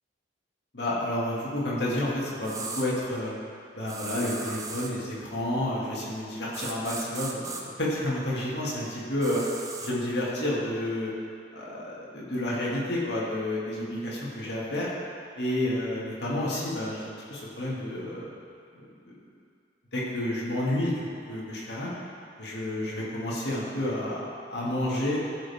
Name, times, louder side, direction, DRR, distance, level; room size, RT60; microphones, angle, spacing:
voice 1, 0.7-3.3 3.7-9.4 9.8-11.1 11.5-14.9 15.4-18.3 18.7-19.1 19.9-21.9 22.4-25.2, left 1 dB, 65° left, -7 dB, 2.4 m, -30 dB
sound 1, 2.4-2.9 3.9-4.9 6.5-7.6 9.2-9.9, right 3 dB, 20° right, 0.7 m, -37 dB
14.0 x 6.5 x 3.6 m, 2.4 s
head